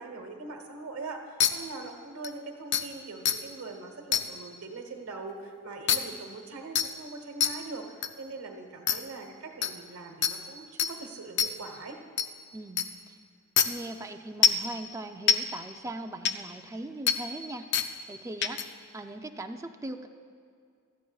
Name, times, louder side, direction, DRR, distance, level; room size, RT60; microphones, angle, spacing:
voice 1, 0.0-12.0, right 3 dB, 80° right, 3 dB, 1.1 m, -42 dB
sound 1, 1.4-1.5 2.2-2.3 2.7-2.8 3.3-3.4 4.1-4.2 5.9-6.0 6.8-6.9 7.4-7.5 8.0-8.1 8.9-9.0 9.6-9.7 10.2-10.3 10.8-10.9 11.4-11.5 12.2-12.3 12.8-12.9 13.6-13.7 14.4-14.6 15.3-15.4 16.3-16.4 17.1-17.2 17.7-17.9 18.4-18.6, left 8 dB, 55° left, 0.5 m, -23 dB
voice 2, 12.5-13.2 13.6-18.6 18.9-20.1, right 2 dB, 15° right, 5 dB, 0.4 m, -40 dB
17.0 x 13.0 x 2.3 m, 2.2 s
head